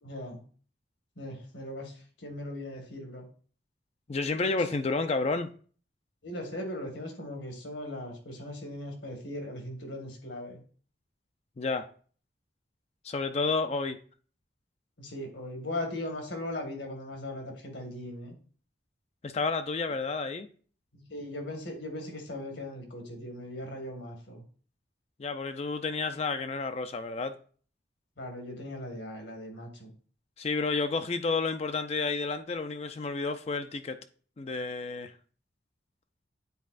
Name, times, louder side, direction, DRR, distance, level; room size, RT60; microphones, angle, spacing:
voice 1, 0.0-0.4 1.2-3.3 6.2-10.6 15.0-18.3 20.9-24.4 28.2-29.9, left 1 dB, 80° left, 1.8 m, -39 dB
voice 2, 4.1-5.5 11.6-11.9 13.0-14.0 19.2-20.5 25.2-27.3 30.4-34.0 34.4-35.1, left 4 dB, 35° left, 0.4 m, -30 dB
9.3 x 4.2 x 2.5 m
head